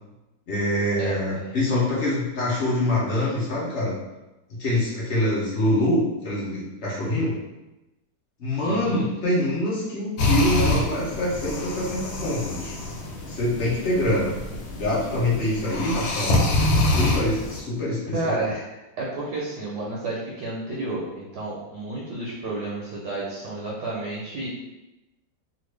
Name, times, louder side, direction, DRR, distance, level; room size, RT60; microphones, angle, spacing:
voice 1, 0.5-3.9 4.6-7.4 8.4-12.7 13.3-14.3 14.7-16.5 16.8-18.4, left 1 dB, 50° left, -7 dB, 0.8 m, -25 dB
voice 2, 8.6-9.1 18.1-18.6 19.0-24.5, right 2 dB, 70° right, -4 dB, 1.2 m, -31 dB
sound 1, 10.2-17.6, left 2 dB, 85° left, 1.4 m, -26 dB
2.9 x 2.5 x 3.2 m, 1.0 s
omnidirectional pair, 2.0 m